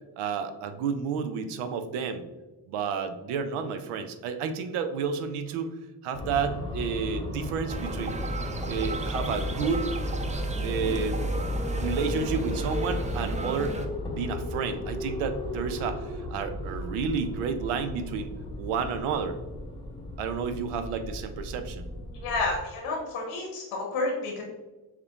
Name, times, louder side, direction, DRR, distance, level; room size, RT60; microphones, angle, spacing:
voice 1, 0.2-2.2 2.7-5.7 6.0-8.2 8.7-9.9 10.6-11.2 11.8-13.8 14.1-18.3 18.6-19.4 20.2-21.9, right 6 dB, 80° right, 9 dB, 0.6 m, -31 dB
sound 1, 6.1-22.6, left 1 dB, 10° left, 0.8 m, -36 dB
sound 2, 7.7-13.9, right 1 dB, 15° right, 0.4 m, -32 dB
voice 2, 22.2-24.4, left 3 dB, 85° left, -1 dB, 1.2 m, -30 dB
6.4 x 2.2 x 2.3 m, 1.1 s
supercardioid pair, 45°, 49 cm